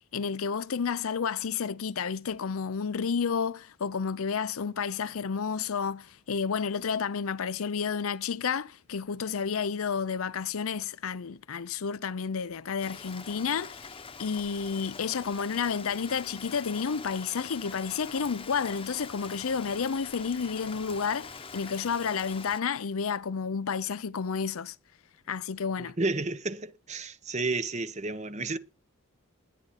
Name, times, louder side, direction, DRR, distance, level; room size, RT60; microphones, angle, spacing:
voice 1, 0.1-13.9 14.2-24.7 25.3-25.9, left 6 dB, 70° left, 0.5 m, -31 dB
Rain, 12.8-22.6, left 5 dB, 25° left, 1.0 m, -44 dB
voice 2, 25.8-28.6, right 3 dB, 30° right, 0.9 m, -31 dB
20.5 x 8.6 x 4.2 m
head